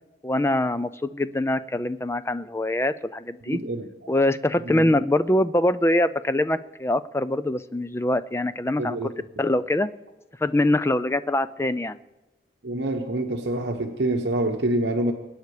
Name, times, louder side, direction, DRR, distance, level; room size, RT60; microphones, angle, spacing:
voice 1, 0.2-3.6 4.1-9.1 9.4-9.9 10.4-12.0, left 1 dB, 15° left, 13 dB, 0.4 m, -24 dB
voice 2, 3.5-3.9 4.6-5.0 8.8-9.2 12.6-15.1, right 1 dB, 65° right, 3 dB, 1.0 m, -26 dB
24.0 x 9.5 x 4.9 m, 1.1 s
head